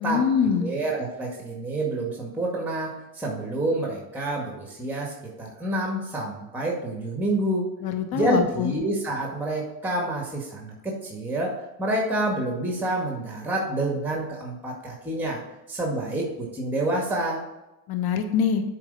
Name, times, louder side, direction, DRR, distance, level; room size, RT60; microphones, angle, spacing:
voice 1, 0.0-0.7 7.8-8.7 17.9-18.6, left 7 dB, 55° left, 7 dB, 1.1 m, -24 dB
voice 2, 0.6-7.7 8.1-15.4 15.7-17.4, right 1 dB, 5° right, -1 dB, 2.0 m, -28 dB
7.4 x 4.5 x 5.3 m, 1.0 s
hypercardioid pair, 75°, 45 cm